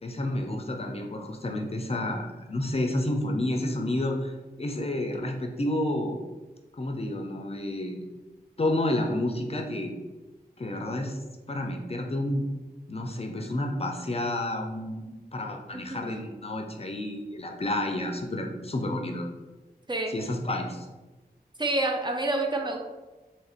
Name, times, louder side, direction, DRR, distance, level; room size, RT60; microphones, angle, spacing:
voice 1, 0.0-6.2 6.8-8.0 8.6-9.9 10.6-11.2 11.5-12.4 12.9-19.3 20.1-20.9, left 1 dB, 35° left, 2 dB, 0.5 m, -30 dB
voice 2, 15.7-16.2 19.9-20.1 21.6-22.8, right 2 dB, 25° right, 2 dB, 0.4 m, -28 dB
3.0 x 2.5 x 4.3 m, 1.2 s
wide cardioid pair, 95°, 17 cm